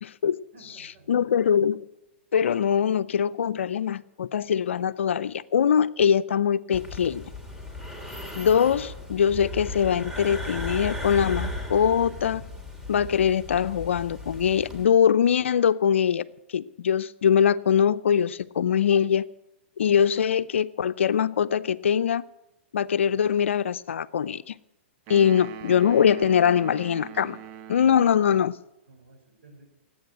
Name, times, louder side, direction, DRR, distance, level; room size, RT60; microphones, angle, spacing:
voice 1, 0.0-0.4 1.1-1.9 2.3-7.2 8.4-12.4 12.9-16.2 16.5-19.3 19.8-22.2 22.7-24.6 25.1-27.4 27.7-28.6, left 8 dB, 80° left, 0.5 m, -22 dB
voice 2, 0.5-1.3 28.9-29.7, right 2 dB, 65° right, 5.1 m, -53 dB
sound 1, 6.7-14.8, left 1 dB, 5° right, 2.9 m, -36 dB
sound 2, 25.1-28.4, right 10 dB, 45° right, 0.8 m, -42 dB
18.5 x 8.6 x 8.2 m
hypercardioid pair, 120°, 7 cm